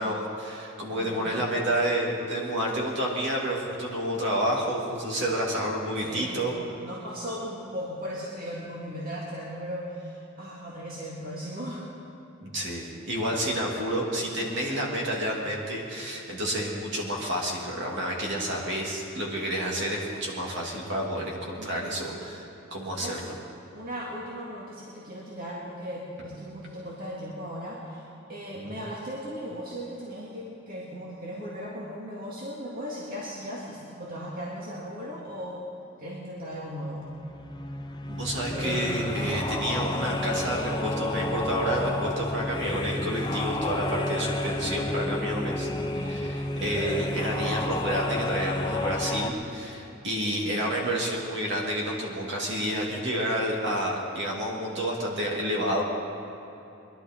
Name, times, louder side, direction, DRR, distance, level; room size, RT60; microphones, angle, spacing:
voice 1, 0.0-6.5 12.4-23.2 28.5-28.8 38.1-45.7 45.9-55.8, right 1 dB, 65° right, -2 dB, 2.8 m, -29 dB
voice 2, 0.9-1.4 6.0-6.4 6.8-11.9 21.5-22.1 23.0-23.3 23.7-35.6 36.0-37.1 50.1-50.6, equal, 50° right, -5 dB, 2.0 m, -37 dB
sound 1, 36.8-49.3, left 2 dB, 20° left, 0.8 m, -30 dB
22.0 x 11.5 x 4.5 m, 2.9 s
head